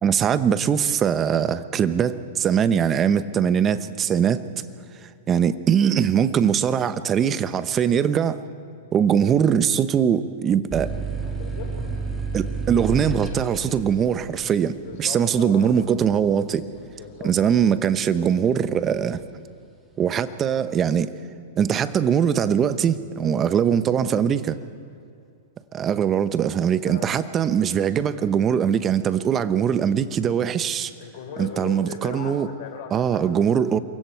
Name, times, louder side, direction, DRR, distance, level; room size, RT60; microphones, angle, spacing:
voice 1, 0.0-4.4 5.3-8.4 8.9-10.9 12.3-16.7 17.2-19.2 20.0-21.1 21.6-24.6 25.7-30.9 31.4-32.5 32.9-33.8, right 8 dB, 25° right, 13 dB, 0.9 m, -21 dB
sound 1, 10.7-18.0 18.4-19.1, right 4 dB, 10° right, 3.0 m, -31 dB
voice 2, 11.2-11.7 14.8-15.7 16.8-17.8 26.8-27.1 31.0-33.5, left 6 dB, 60° left, 4 dB, 4.5 m, -38 dB
28.0 x 23.0 x 4.6 m, 2.4 s
hypercardioid pair, 135°, 0 cm